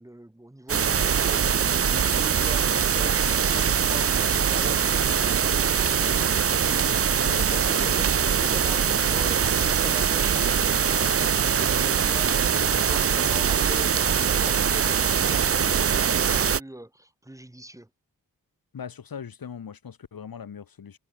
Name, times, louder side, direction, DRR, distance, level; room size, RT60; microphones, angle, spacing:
voice 1, 0.0-6.6 7.3-17.9, right 1 dB, 10° right, 1.7 m, -43 dB
sound 1, 0.7-16.6, right 7 dB, 40° right, 0.6 m, -22 dB
voice 2, 7.2-8.0 18.7-21.0, left 7 dB, 80° left, 5.4 m, -40 dB
wide cardioid pair, 140°, 35 cm